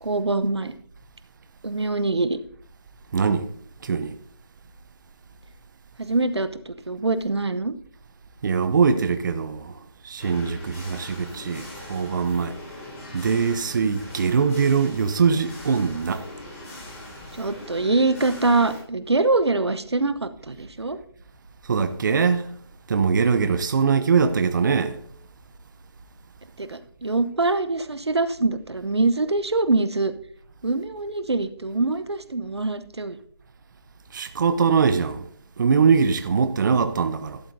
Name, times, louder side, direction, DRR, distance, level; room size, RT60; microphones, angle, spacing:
voice 1, 0.0-0.7 1.6-2.4 6.0-7.7 17.4-21.0 26.6-30.1 30.6-33.2, right 3 dB, 90° right, 0.8 m, -24 dB
voice 2, 3.1-3.5 3.8-4.1 8.4-12.6 13.1-16.3 21.6-22.5 22.9-25.0 34.1-35.3 35.6-37.4, right 5 dB, 50° right, 0.8 m, -22 dB
sound 1, 10.2-18.8, left 2 dB, 35° left, 5.2 m, -41 dB
12.0 x 11.5 x 2.7 m
figure-of-eight pair, 150°, 14 cm